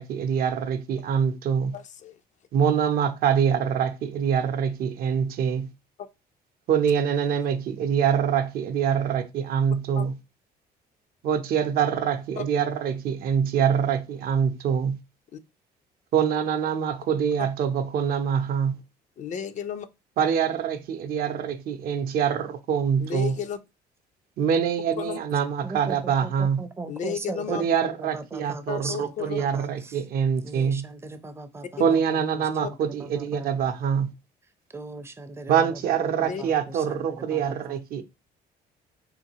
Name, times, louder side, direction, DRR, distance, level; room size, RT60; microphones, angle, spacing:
voice 1, 0.0-1.7 2.5-5.7 6.7-10.2 11.2-15.0 16.1-18.8 20.2-23.4 24.4-26.6 27.5-30.8 31.8-34.1 35.5-38.0, right 7 dB, 60° right, 0.5 m, -25 dB
voice 2, 1.7-2.2 10.0-10.1 12.4-12.5 15.3-15.4 17.4-17.5 19.2-19.9 23.0-23.6 25.0-25.2 26.9-27.7 28.7-29.4 31.8-31.9 32.6-32.7 36.3-36.4, left 8 dB, 45° left, 0.4 m, -33 dB
voice 3, 25.6-30.0 30.4-33.5 34.7-37.8, right 3 dB, 15° right, 0.4 m, -39 dB
3.7 x 2.4 x 2.8 m
cardioid pair, 110°, 17 cm